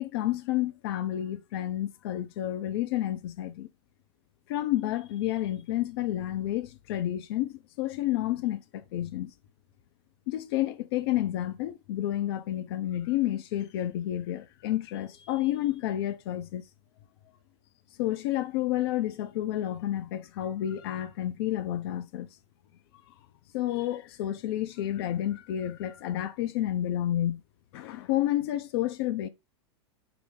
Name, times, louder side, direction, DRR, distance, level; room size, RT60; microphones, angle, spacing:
voice 1, 0.0-3.7 4.5-9.3 10.3-16.6 18.0-22.3 23.5-27.4 27.7-29.3, left 13 dB, 55° left, 0.4 m, -30 dB
3.8 x 2.0 x 3.6 m
hypercardioid pair, 95°, 15 cm